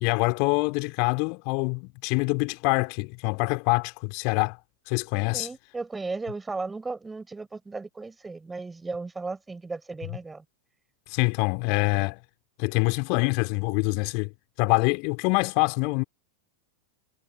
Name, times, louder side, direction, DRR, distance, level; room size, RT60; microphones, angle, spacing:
voice 1, 0.0-4.6 4.9-5.5 11.1-12.2 12.6-14.3 14.6-16.0, left 38 dB, 45° left, 2.9 m, -25 dB
voice 2, 5.3-10.4, right 3 dB, 10° right, 4.3 m, -35 dB
figure-of-eight pair, 90°, 0 cm